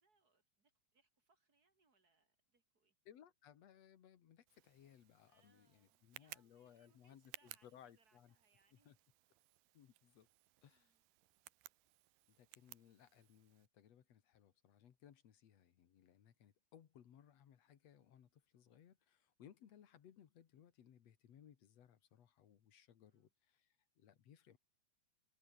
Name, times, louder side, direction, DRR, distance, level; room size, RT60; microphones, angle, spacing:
voice 1, 0.0-3.0 5.3-9.0 9.6-9.7 10.7-11.0 23.0-23.3, right 4 dB, 30° right, 2.9 m, -78 dB
voice 2, 3.1-8.4 8.7-9.0 9.7-10.3 10.6-10.9 12.3-24.6, left 9 dB, 55° left, 2.6 m, -64 dB
Tick, 4.5-13.7, right 17 dB, 80° right, 2.5 m, -61 dB
omnidirectional pair, 4.1 m